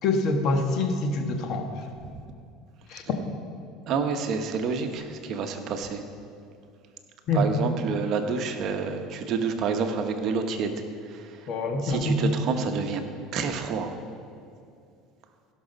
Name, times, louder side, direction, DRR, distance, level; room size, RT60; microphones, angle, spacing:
voice 1, 0.0-1.7 2.9-3.0 7.3-7.5 11.5-12.3, left 2 dB, 55° left, 5 dB, 1.3 m, -25 dB
voice 2, 3.9-6.0 7.3-10.7 11.8-13.0 13.3-13.9, right 5 dB, 50° right, 6 dB, 1.0 m, -28 dB
16.0 x 6.2 x 5.3 m, 2.4 s
supercardioid pair, 120°, 0 cm